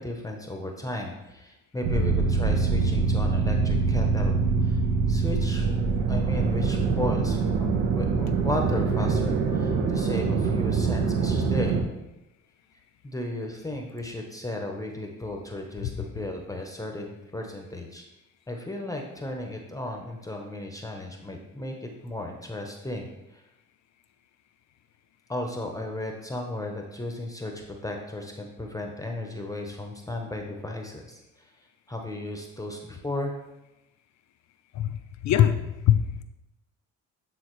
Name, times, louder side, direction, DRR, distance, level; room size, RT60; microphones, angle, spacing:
voice 1, 0.0-4.8 5.1-5.7 6.1-7.4 7.9-11.8 13.0-18.0 18.5-23.4 25.3-31.5 31.9-33.4, left 1 dB, 10° left, 2 dB, 0.7 m, -35 dB
sound 1, 1.8-11.8, right 4 dB, 75° right, 0.9 m, -24 dB
voice 2, 35.2-36.2, left 10 dB, 65° left, 8 dB, 0.6 m, -22 dB
8.7 x 3.7 x 3.1 m, 0.95 s
cardioid pair, 90°, 30 cm